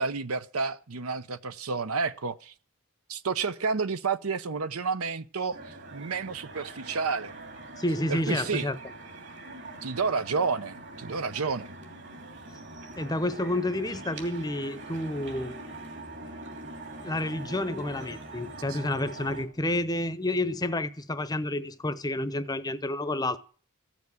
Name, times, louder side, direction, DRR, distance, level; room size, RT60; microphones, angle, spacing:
voice 1, 0.0-2.5 3.1-5.6 5.9-7.4 8.1-8.7 9.8-11.7 18.7-18.8, right 4 dB, 75° right, 0.8 m, -30 dB
sound 1, 5.5-19.4, right 2 dB, 55° right, 3.0 m, -43 dB
voice 2, 7.8-8.8 12.9-15.6 17.0-23.4, left 1 dB, 15° left, 0.8 m, -30 dB
15.5 x 7.3 x 9.7 m
head